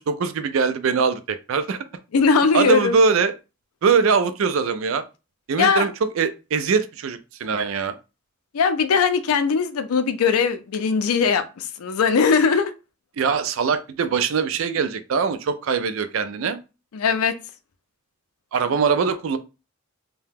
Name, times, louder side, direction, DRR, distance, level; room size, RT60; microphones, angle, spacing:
voice 1, 0.0-1.8 2.5-3.3 3.8-5.0 5.5-7.9 13.2-16.6 18.5-19.4, right 5 dB, 70° right, 0.4 m, -22 dB
voice 2, 2.1-3.0 5.6-5.9 8.5-12.7 16.9-17.3, left 5 dB, 90° left, 0.4 m, -20 dB
2.7 x 2.2 x 3.4 m
head